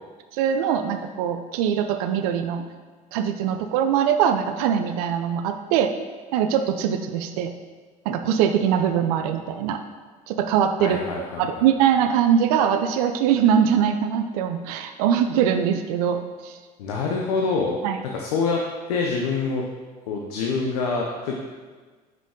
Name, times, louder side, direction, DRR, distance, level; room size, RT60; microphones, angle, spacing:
voice 1, 0.3-2.6 3.1-5.9 6.3-7.5 8.1-9.8 10.3-11.0 11.4-16.6 17.8-18.0, right 8 dB, 75° right, 7 dB, 0.4 m, -22 dB
voice 2, 10.8-11.6 16.8-17.8 18.0-18.6 18.9-19.6 20.1-21.3, left 4 dB, 80° left, -1 dB, 0.7 m, -26 dB
5.3 x 5.2 x 3.6 m, 1.4 s
hypercardioid pair, 70°, 19 cm